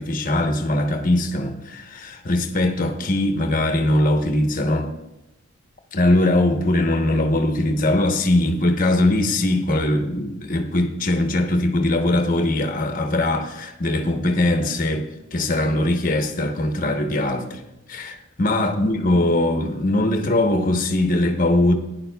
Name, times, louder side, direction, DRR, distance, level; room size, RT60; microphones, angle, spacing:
voice 1, 0.0-4.9 5.9-17.6 17.9-21.7, left 1 dB, 40° left, 0.9 m, -21 dB
16.0 x 10.5 x 2.3 m
head